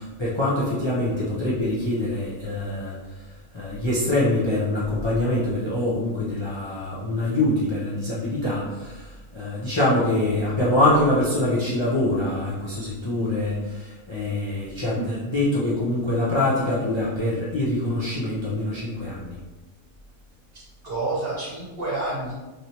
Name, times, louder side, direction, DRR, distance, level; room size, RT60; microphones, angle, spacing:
voice 1, 0.0-19.4, left 1 dB, 45° left, -8 dB, 0.3 m, -24 dB
voice 2, 20.5-22.3, right 2 dB, 45° right, -6 dB, 1.1 m, -29 dB
3.2 x 2.7 x 2.8 m, 1.2 s
omnidirectional pair, 1.5 m